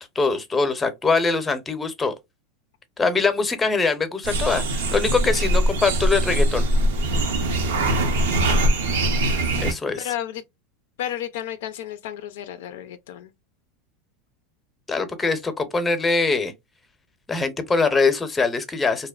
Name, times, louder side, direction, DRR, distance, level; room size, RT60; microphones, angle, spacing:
voice 1, 0.0-2.1 3.0-6.7 9.6-10.1 14.9-16.5 17.3-19.1, left 4 dB, 15° left, 0.6 m, -23 dB
sound 1, 4.2-9.7, right 1 dB, 85° right, 0.7 m, -22 dB
voice 2, 10.0-10.4 11.0-13.3, left 11 dB, 75° left, 0.3 m, -32 dB
2.7 x 2.0 x 2.3 m
hypercardioid pair, 110°, 0 cm